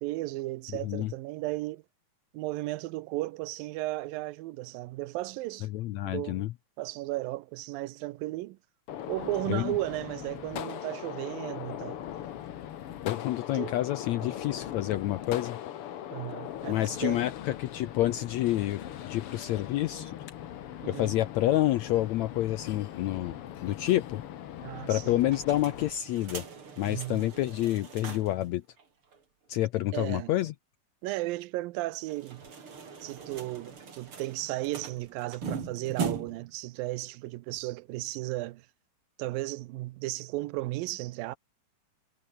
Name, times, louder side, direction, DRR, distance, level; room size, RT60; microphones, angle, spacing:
voice 1, 0.0-1.8 2.3-5.7 6.0-6.5 6.8-8.6 9.1-12.0 13.5-13.8 16.1-17.3 20.8-21.1 24.6-25.2 26.8-27.3 29.9-30.3 31.0-32.4 33.0-38.7 39.2-41.4, right 18 dB, 90° right, 2.5 m, -35 dB
voice 2, 5.7-6.5 9.5-9.7 13.0-15.6 16.7-20.1 20.9-24.2 24.9-26.4 26.8-28.6 29.5-30.5, left 14 dB, 80° left, 1.6 m, -28 dB
Gunshot gunfire, 8.9-25.9, left 11 dB, 60° left, 1.5 m, -40 dB
sound 1, 25.2-28.5 28.8-28.9 29.1-29.2 32.0-36.5, right 5 dB, 40° right, 3.8 m, -40 dB
omnidirectional pair, 4.0 m